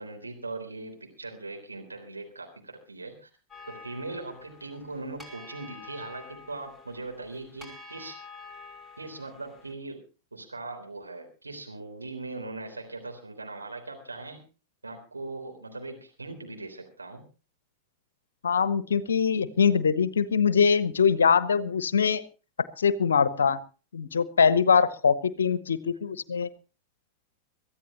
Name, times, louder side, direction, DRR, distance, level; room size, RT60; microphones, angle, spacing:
voice 1, 0.0-3.3 3.7-8.2 9.0-10.0 10.3-14.4 14.8-17.2, right 2 dB, 80° right, 3 dB, 3.6 m, -40 dB
sound 1, 3.5-9.7, left 3 dB, ahead, 5.3 m, -48 dB
voice 2, 18.4-22.2 22.8-23.6 23.9-26.5, left 6 dB, 70° left, 16 dB, 0.8 m, -23 dB
23.5 x 14.5 x 2.9 m, 0.34 s
figure-of-eight pair, 90°, 0 cm